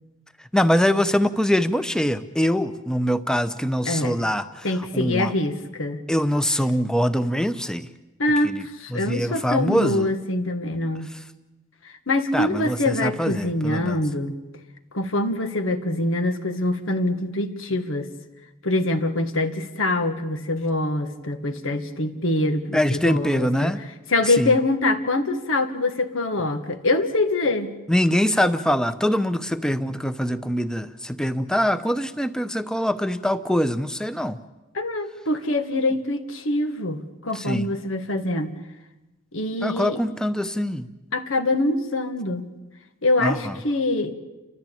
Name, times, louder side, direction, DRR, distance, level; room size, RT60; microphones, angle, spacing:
voice 1, 0.5-5.3 6.1-7.9 8.4-8.6 8.9-10.1 11.1-11.2 12.3-14.0 22.7-23.8 24.3-24.5 27.9-34.4 37.3-37.7 39.6-40.9 43.2-43.6, equal, 5° left, 11 dB, 0.7 m, -23 dB
voice 2, 3.9-4.2 4.6-6.0 8.2-11.1 11.8-14.3 14.9-18.1 18.6-23.7 24.1-27.7 34.7-38.6 39.3-40.0 41.1-42.5 43.0-44.1, left 2 dB, 90° left, 7 dB, 1.8 m, -24 dB
30.0 x 13.5 x 8.6 m, 1.1 s
head